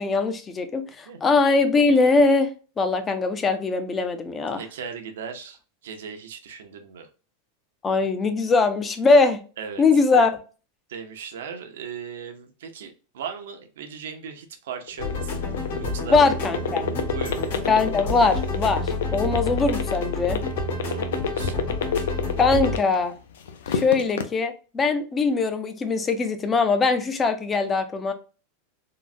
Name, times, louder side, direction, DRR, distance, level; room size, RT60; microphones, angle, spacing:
voice 1, 0.0-2.5 2.8-4.6 7.8-9.4 9.8-10.3 16.1-16.8 17.7-20.4 22.4-23.2 23.7-28.1, left 4 dB, 15° left, 9 dB, 0.3 m, -21 dB
voice 2, 4.5-7.1 9.6-9.8 10.1-10.3 10.9-15.3 15.8-16.3 17.1-17.4 20.9-21.7, right 6 dB, 85° right, 6 dB, 0.6 m, -37 dB
sound 1, 14.9-23.1 23.5-24.2, left 7 dB, 90° left, 0.5 m, -27 dB
sound 2, 15.0-22.8, left 2 dB, 70° left, 1.2 m, -29 dB
3.7 x 2.0 x 2.4 m, 0.35 s
supercardioid pair, 175°, 0 cm